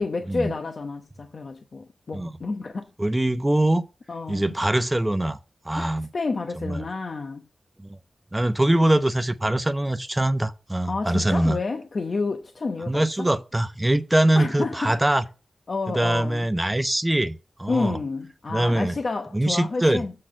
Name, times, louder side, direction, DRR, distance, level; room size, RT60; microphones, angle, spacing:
voice 1, 0.0-2.9 4.1-4.5 5.8-7.4 10.9-13.3 14.3-14.9 15.7-16.5 17.7-20.1, left 3 dB, 60° left, 0.8 m, -30 dB
voice 2, 3.0-3.8 4.3-5.4 5.6-6.1 6.6-6.8 7.8-7.9 8.3-11.6 12.9-15.2 15.9-18.0 18.5-19.0 19.3-20.0, right 1 dB, 15° right, 0.8 m, -23 dB
7.6 x 4.1 x 6.4 m
wide cardioid pair, 75°, 0 cm